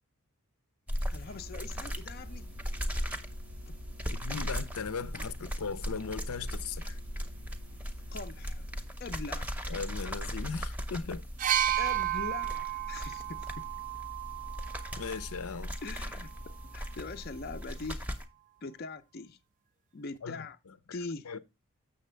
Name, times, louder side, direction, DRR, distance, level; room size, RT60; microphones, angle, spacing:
sound 1, 0.9-18.2, equal, 5° right, 0.7 m, -38 dB
voice 1, 1.1-2.5 3.7-3.8 5.2-5.3 8.1-8.7 9.0-9.5 11.8-13.7 15.8-18.1 18.6-19.4 19.9-20.6 20.9-21.4, left 4 dB, 45° left, 0.5 m, -42 dB
Musical instrument, 1.3-9.1, left 2 dB, 75° right, 0.7 m, -55 dB
voice 2, 4.1-7.0 9.7-11.2 15.0-15.7 20.2-20.4 21.3-21.4, left 5 dB, 85° left, 0.6 m, -38 dB
sound 2, 11.4-15.2 16.2-16.4, right 12 dB, 35° right, 0.3 m, -32 dB
6.9 x 6.7 x 3.2 m
head